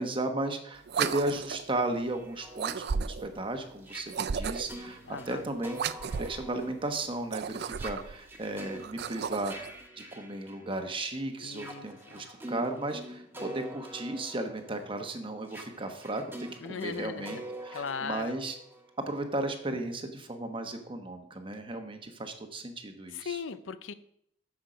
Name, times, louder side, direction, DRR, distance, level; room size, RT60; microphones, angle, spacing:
voice 1, 0.0-5.0 5.3-5.8 6.2-18.5 19.1-23.4, right 2 dB, 25° right, 6 dB, 1.1 m, -35 dB
sound 1, 0.9-1.7 2.6-3.4 4.1-4.8 5.7-6.4 7.2-8.2 8.8-9.7, right 6 dB, 55° right, 0.4 m, -34 dB
Guitarr fredd, 2.1-11.0 11.4-19.2, right 1 dB, 10° right, 1.6 m, -46 dB
voice 2, 5.1-5.4 11.4-11.9 12.1-12.2 13.4-13.7 16.6-17.4 17.7-18.4 23.1-23.9, left 6 dB, 80° left, 13 dB, 0.6 m, -38 dB
10.5 x 7.2 x 5.1 m, 0.72 s
head